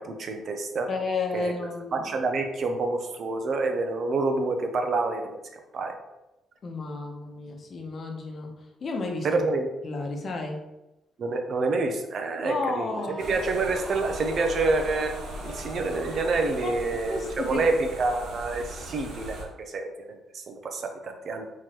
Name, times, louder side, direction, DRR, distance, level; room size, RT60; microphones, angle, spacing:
voice 1, 0.0-0.9 1.3-1.5 1.9-5.4 5.7-5.9 9.2-9.7 11.2-15.1 15.4-21.5, right 3 dB, 55° right, 5 dB, 0.7 m, -28 dB
voice 2, 0.9-2.1 6.6-8.5 8.8-9.4 9.8-10.6 12.4-13.3 16.6-16.7 17.1-17.6, left 3 dB, 45° left, 3 dB, 0.9 m, -32 dB
sound 1, 12.8-16.8, right 1 dB, 20° right, 0.6 m, -41 dB
sound 2, 13.2-19.4, equal, 90° right, 1.2 m, -40 dB
4.7 x 3.8 x 3.0 m, 0.97 s
cardioid pair, 90°, 0 cm